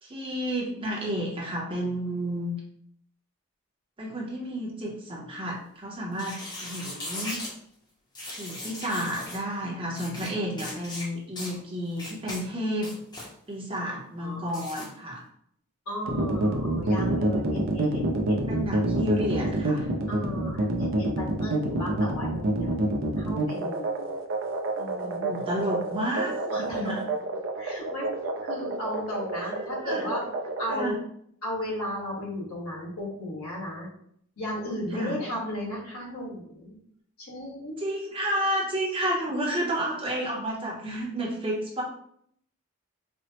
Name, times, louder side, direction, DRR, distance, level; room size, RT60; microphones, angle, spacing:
voice 1, 0.0-2.6 4.0-7.4 8.3-12.9 13.5-15.2 18.5-19.9 25.0-26.5 26.9-27.0 29.8-30.1 30.7-30.9 34.9-35.2 37.8-41.8, equal, 25° right, -2 dB, 0.6 m, -31 dB
sound 1, 6.1-7.5 8.1-9.4 9.9-10.3 10.6-11.1 11.4-11.5 12.0-12.4 12.8-13.3 14.5-14.9, left 1 dB, 20° left, 0.6 m, -38 dB
voice 2, 13.9-14.6 15.8-18.7 20.1-24.1 24.7-25.2 26.5-26.9 27.6-30.3 30.6-31.0 31.4-33.9 34.4-36.8 37.2-37.8, left 1 dB, 80° left, -4 dB, 1.4 m, -35 dB
sound 2, 16.1-30.9, right 2 dB, 65° right, 0.5 m, -27 dB
4.3 x 2.0 x 2.8 m, 0.68 s
head